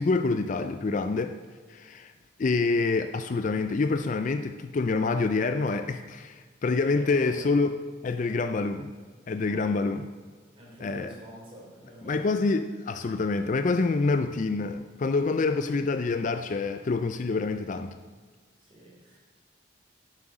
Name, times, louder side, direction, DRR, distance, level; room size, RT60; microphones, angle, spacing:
voice 1, 0.0-1.4 1.7-2.1 2.4-7.7 8.0-8.9 9.3-10.0 10.8-11.1 12.1-18.0, left 3 dB, 40° left, 9 dB, 0.4 m, -27 dB
voice 2, 6.7-7.5 9.4-9.9 10.5-12.4 18.6-19.2, right 1 dB, 25° right, -4 dB, 3.1 m, -46 dB
10.0 x 7.5 x 4.9 m, 1.5 s
head